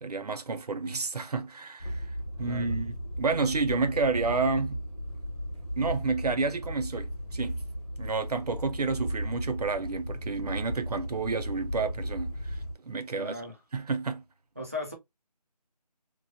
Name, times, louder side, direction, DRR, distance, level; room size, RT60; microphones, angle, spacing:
voice 1, 0.0-2.1 2.4-4.8 5.8-7.6 8.0-13.4 13.7-14.2 14.6-14.7, right 4 dB, 70° right, 0.7 m, -30 dB
sound 1, 1.8-12.7, equal, 45° left, 1.1 m, -35 dB
voice 2, 2.4-2.8 13.1-13.5 14.6-14.9, left 2 dB, 20° right, 0.5 m, -37 dB
2.9 x 2.2 x 2.5 m
figure-of-eight pair, 170°, 21 cm